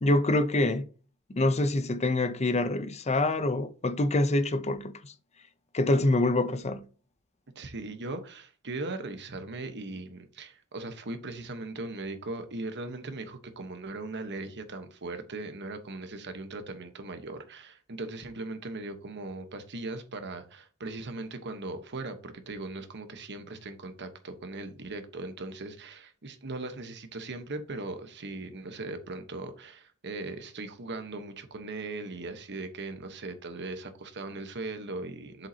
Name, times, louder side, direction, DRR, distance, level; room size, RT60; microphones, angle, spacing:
voice 1, 0.0-0.9 1.3-5.1 5.7-6.8, left 2 dB, 30° left, 0.7 m, -26 dB
voice 2, 7.5-35.5, right 2 dB, 55° right, 1.2 m, -39 dB
7.9 x 7.4 x 2.9 m
head